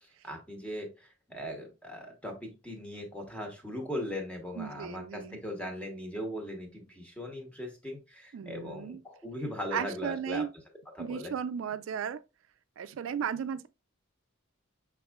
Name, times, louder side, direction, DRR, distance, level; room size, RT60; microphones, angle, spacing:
voice 1, 0.2-10.5 10.9-11.3, equal, 5° left, 0.9 m, -39 dB
voice 2, 4.6-5.4 8.3-9.0 9.7-10.5 11.0-12.2 12.8-13.7, right 7 dB, 70° right, 0.3 m, -35 dB
5.9 x 3.5 x 2.2 m
head